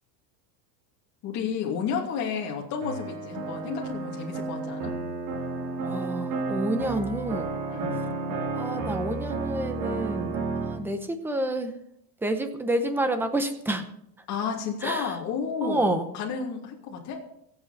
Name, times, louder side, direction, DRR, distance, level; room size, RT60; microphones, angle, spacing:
voice 1, 1.2-4.9 7.7-8.2 14.3-17.2, left 6 dB, 35° left, -1 dB, 2.6 m, -32 dB
sound 1, 2.8-10.8, right 3 dB, 50° right, 2.7 m, -32 dB
voice 2, 5.8-7.5 8.5-11.7 12.2-13.9 14.8-15.1 15.6-16.1, right 1 dB, 5° right, 8 dB, 0.7 m, -29 dB
23.5 x 7.9 x 4.2 m, 0.75 s
supercardioid pair, 160°, 48 cm